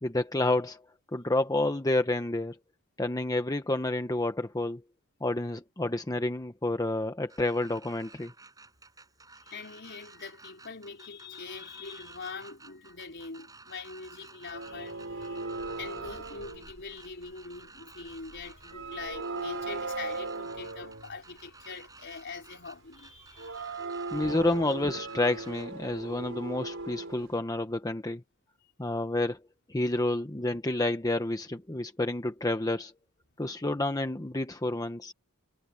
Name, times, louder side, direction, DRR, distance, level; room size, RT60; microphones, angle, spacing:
voice 1, 0.0-0.8 1.1-2.6 3.0-4.8 5.2-8.3 24.1-28.2 28.8-29.4 29.7-32.9 33.4-35.1, left 2 dB, 15° left, 0.9 m, -29 dB
sound 1, 7.3-25.7, right 3 dB, 15° right, 5.4 m, -54 dB
voice 2, 9.4-15.5 15.8-23.8 24.2-24.4, left 4 dB, 55° left, 4.6 m, -43 dB
sound 2, 14.5-17.4 18.1-21.2 23.3-27.3, right 3 dB, 60° right, 6.3 m, -38 dB
head